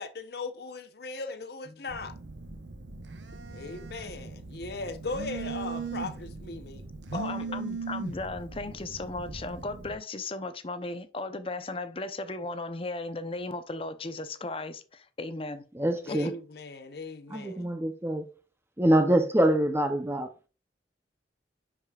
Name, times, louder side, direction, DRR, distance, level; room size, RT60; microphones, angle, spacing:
voice 1, 0.0-2.1 3.5-7.6 16.0-17.7, left 3 dB, 60° left, 0.8 m, -38 dB
Telephone, 1.9-10.0, right 4 dB, 85° right, 0.9 m, -39 dB
voice 2, 7.1-15.6 16.1-16.3, left 2 dB, 30° left, 0.6 m, -36 dB
voice 3, 15.7-16.3 17.3-18.3 18.8-20.5, right 1 dB, 15° right, 0.6 m, -25 dB
10.5 x 5.0 x 2.4 m
head